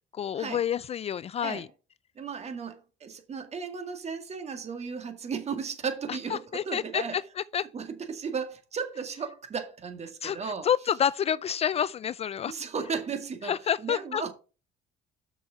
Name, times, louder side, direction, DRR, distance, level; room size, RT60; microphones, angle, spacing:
voice 1, 0.1-1.7 6.3-7.7 10.2-12.5 13.4-14.3, left 8 dB, 35° left, 0.3 m, -29 dB
voice 2, 2.2-7.2 7.7-10.7 12.5-14.3, right 5 dB, 40° right, 1.9 m, -35 dB
6.4 x 6.2 x 5.6 m
cardioid pair, 110°, 17 cm